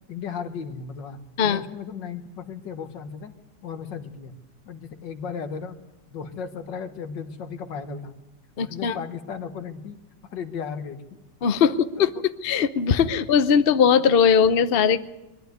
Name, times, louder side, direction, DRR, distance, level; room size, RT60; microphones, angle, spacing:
voice 1, 0.1-3.3 3.6-4.3 4.7-5.8 6.1-8.1 8.6-10.0 10.3-11.2 12.0-12.1, left 6 dB, 75° left, 8 dB, 2.0 m, -35 dB
voice 2, 8.6-9.0 11.4-12.1 12.4-15.0, left 7 dB, 50° left, 11 dB, 0.7 m, -19 dB
22.0 x 13.0 x 9.4 m, 1.0 s
omnidirectional pair, 2.0 m